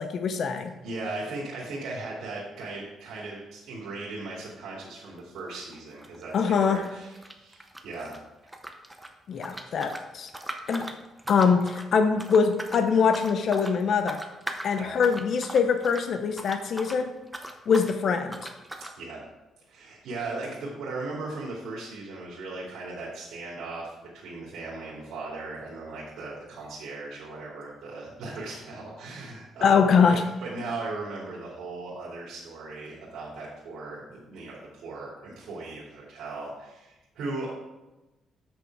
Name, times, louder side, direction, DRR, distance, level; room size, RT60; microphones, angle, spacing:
voice 1, 0.0-0.7 6.3-6.8 9.3-10.3 10.7-10.9 11.3-14.2 14.6-17.1 17.7-18.5 29.6-30.2, left 6 dB, 55° left, 8 dB, 0.6 m, -23 dB
voice 2, 0.8-8.2 14.7-14.9 19.0-19.3 19.7-29.8 30.1-37.6, right 3 dB, 80° right, -6 dB, 2.5 m, -38 dB
sound 1, 5.2-5.4 5.6-8.2 8.5-17.0 17.3-18.0 18.3-19.0, right 1 dB, 5° right, 0.8 m, -40 dB
8.2 x 6.3 x 4.7 m, 1.0 s
cardioid pair, 135°, 0 cm